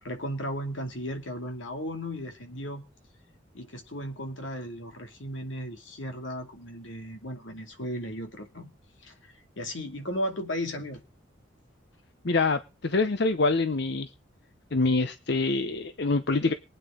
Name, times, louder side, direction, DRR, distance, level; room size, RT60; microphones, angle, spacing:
voice 1, 0.0-2.8 3.5-8.7 9.0-11.0, equal, 80° left, 2.5 m, -35 dB
voice 2, 12.2-14.1 14.7-16.5, left 3 dB, 60° left, 0.8 m, -25 dB
23.0 x 9.2 x 3.8 m
head